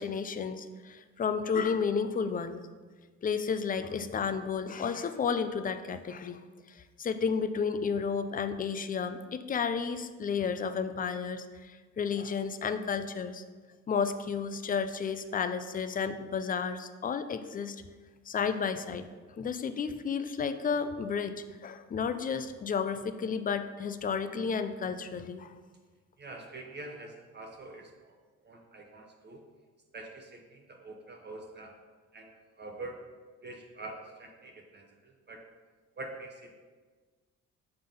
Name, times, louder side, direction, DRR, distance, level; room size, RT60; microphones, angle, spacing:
voice 1, 0.0-2.6 3.2-6.4 6.7-13.4 13.9-17.8 18.3-19.1 19.4-25.5, left 6 dB, 30° left, 10 dB, 0.4 m, -32 dB
voice 2, 26.2-28.2 28.4-29.4 29.9-31.7 32.1-33.0 33.4-35.5 36.0-36.6, right 2 dB, 35° right, 2 dB, 0.7 m, -45 dB
5.5 x 3.9 x 5.0 m, 1.4 s
cardioid pair, 90°, 30 cm